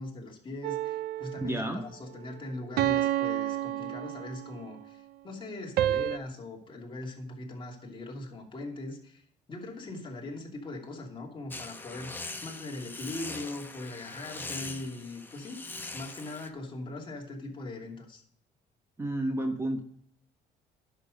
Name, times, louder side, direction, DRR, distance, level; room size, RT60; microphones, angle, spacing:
voice 1, 0.0-9.2 9.5-18.2, left 2 dB, 30° left, 0 dB, 2.8 m, -40 dB
sound 1, 0.6-1.6 2.8-4.7 5.8-6.2, right 13 dB, 70° right, 0.5 m, -29 dB
voice 2, 1.4-1.8 19.0-19.8, right 1 dB, 15° right, 5 dB, 1.0 m, -31 dB
sound 2, 11.5-16.5, left 2 dB, 10° left, 1.0 m, -41 dB
10.5 x 6.9 x 5.2 m, 0.66 s
cardioid pair, 110°, 17 cm